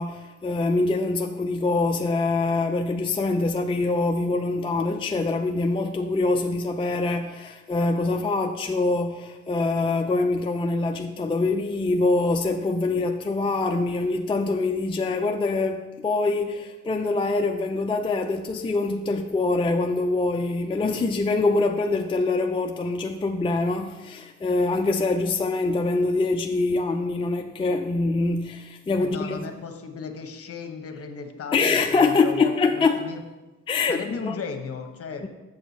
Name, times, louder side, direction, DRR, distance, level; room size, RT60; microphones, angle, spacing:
voice 1, 0.0-29.4 31.5-33.0 33.7-34.3 35.2-35.3, left 3 dB, 15° left, 4 dB, 0.4 m, -24 dB
voice 2, 29.0-31.6 31.9-33.2 33.9-35.3, left 5 dB, 50° left, 5 dB, 1.1 m, -35 dB
7.0 x 6.6 x 4.1 m, 1.1 s
cardioid pair, 90°, 30 cm